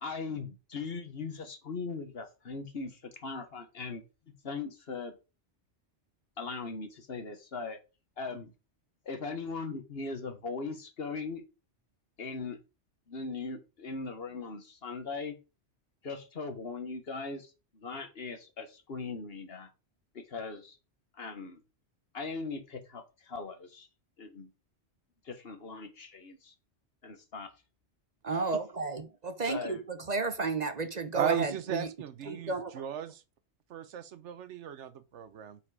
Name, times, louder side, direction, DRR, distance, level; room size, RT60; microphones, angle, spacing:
voice 1, 0.0-5.2 6.4-7.8 8.2-8.5 9.0-11.4 12.2-12.6 13.1-15.4 16.0-19.7 20.1-20.8 21.1-21.6 22.1-23.9 24.2-24.5 25.2-26.5 27.0-27.5 28.3-28.5 29.5-29.8, left 4 dB, 60° left, 1.5 m, -39 dB
voice 2, 28.2-31.9 32.3-32.8, right 4 dB, 45° right, 0.7 m, -32 dB
voice 3, 31.1-33.2 33.7-35.6, right 9 dB, 80° right, 1.1 m, -36 dB
7.2 x 5.1 x 4.9 m
omnidirectional pair, 1.2 m